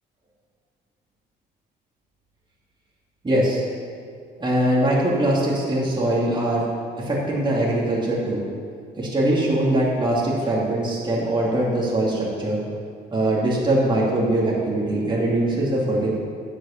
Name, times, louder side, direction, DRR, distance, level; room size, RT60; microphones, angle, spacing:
voice 1, 3.2-3.6 4.4-6.6 7.0-8.4 9.0-12.6 13.1-16.1, right 1 dB, 25° right, -5 dB, 2.6 m, -22 dB
9.6 x 6.6 x 7.2 m, 2.3 s
cardioid pair, 85°, 19 cm